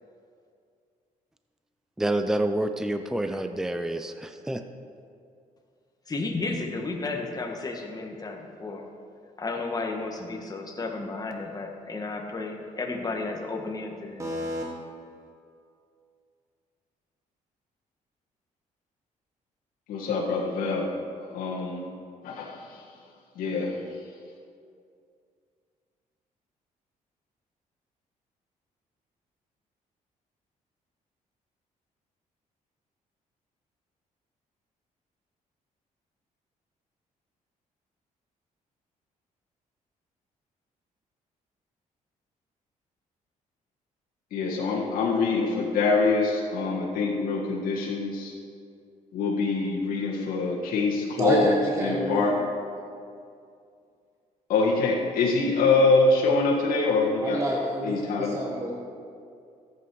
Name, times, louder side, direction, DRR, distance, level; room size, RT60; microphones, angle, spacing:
voice 1, 2.0-4.6, right 1 dB, 5° right, 8 dB, 0.5 m, -28 dB
voice 2, 6.1-8.9 9.4-14.4, left 3 dB, 25° left, 1 dB, 1.5 m, -33 dB
voice 3, 14.2-14.6 51.2-52.3 57.2-58.7, right 1 dB, 20° right, -2 dB, 1.4 m, -28 dB
voice 4, 19.9-20.9 21.3-21.8 22.2-22.9 23.4-23.7 44.3-48.3 49.1-52.4 54.5-57.4 57.8-58.4, left 3 dB, 80° left, -4 dB, 1.6 m, -24 dB
14.0 x 8.4 x 4.7 m, 2.4 s
cardioid pair, 100°, 14 cm